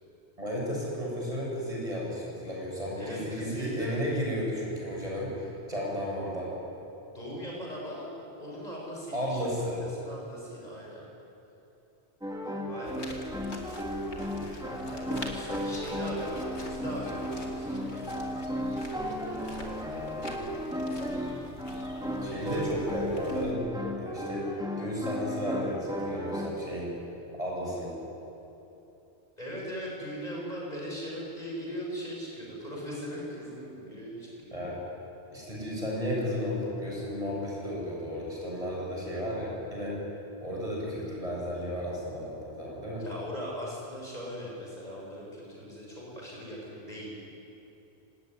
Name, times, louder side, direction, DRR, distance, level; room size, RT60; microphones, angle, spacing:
voice 1, 0.4-6.6 9.1-9.8 20.1-20.4 20.9-21.1 22.2-23.6 24.0-26.9 27.4-28.0 34.5-34.8 35.3-40.0 40.4-43.1, equal, 30° right, -4 dB, 8.1 m, -33 dB
voice 2, 2.9-4.0 7.1-11.0 12.6-13.2 14.1-18.4 18.8-20.1 22.0-22.6 29.4-34.6 43.0-47.2, equal, 40° left, -4 dB, 7.3 m, -40 dB
sound 1, 12.2-26.5, equal, 5° right, 2.5 m, -35 dB
sound 2, 12.8-23.5, left 1 dB, 80° left, 3.3 m, -45 dB
25.5 x 18.0 x 9.9 m, 2.9 s
omnidirectional pair, 1.1 m